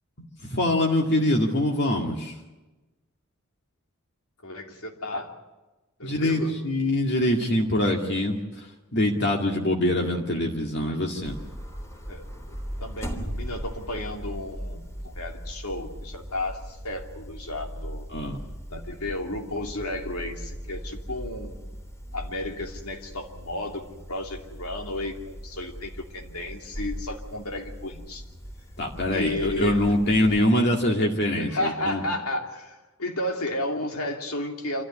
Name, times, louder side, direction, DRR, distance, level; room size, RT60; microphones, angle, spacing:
voice 1, 0.2-2.3 6.0-8.7 8.9-11.4 18.1-18.4 28.8-32.0, left 1 dB, 50° left, 0 dB, 2.2 m, -24 dB
voice 2, 4.4-5.3 6.0-6.5 12.1-12.3 12.8-18.1 18.7-21.6 22.1-28.2 29.1-30.1 31.4-34.8, left 1 dB, 85° left, 2 dB, 3.0 m, -33 dB
sound 1, 11.2-30.4, equal, 15° left, 3.3 m, -39 dB
27.0 x 13.5 x 9.9 m, 1.1 s
head